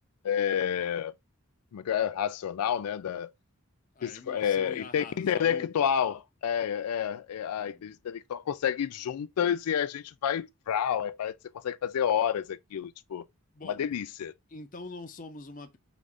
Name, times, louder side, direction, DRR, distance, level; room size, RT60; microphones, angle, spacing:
voice 1, 0.2-1.1 1.7-3.3 4.0-13.2 13.6-14.3, left 8 dB, 90° left, 0.4 m, -29 dB
voice 2, 3.9-5.7 7.6-8.0 13.5-14.1 14.5-15.8, left 3 dB, 35° left, 0.6 m, -44 dB
5.0 x 2.6 x 3.3 m
head